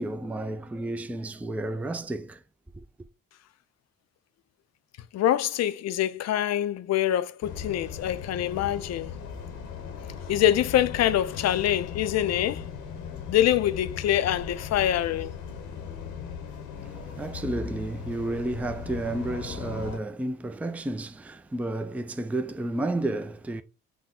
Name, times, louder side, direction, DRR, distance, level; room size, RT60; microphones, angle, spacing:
voice 1, 0.0-2.4 2.7-2.9 16.8-23.6, right 2 dB, 5° right, 0.4 m, -32 dB
voice 2, 5.1-9.1 10.3-12.7 13.3-15.3, left 11 dB, 60° left, 0.5 m, -25 dB
sound 1, 7.4-20.0, left 7 dB, 90° left, 1.0 m, -38 dB
6.0 x 2.2 x 3.7 m
cardioid pair, 90°, 30 cm